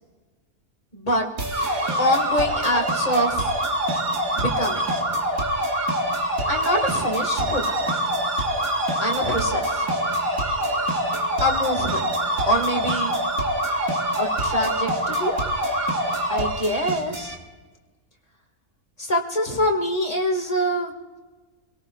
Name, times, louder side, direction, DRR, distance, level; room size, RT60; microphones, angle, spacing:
voice 1, 0.9-1.3 2.0-3.5 4.3-4.8 6.5-7.8 9.0-9.9 11.4-12.1 12.5-13.1 14.2-15.3 16.3-17.4 19.0-20.9, equal, 25° left, 1 dB, 2.0 m, -25 dB
sound 1, 1.4-17.3, right 2 dB, 70° right, 2.1 m, -32 dB
sound 2, 1.5-16.5, equal, 25° right, 2.9 m, -25 dB
27.0 x 18.0 x 2.4 m, 1.3 s
omnidirectional pair, 1.5 m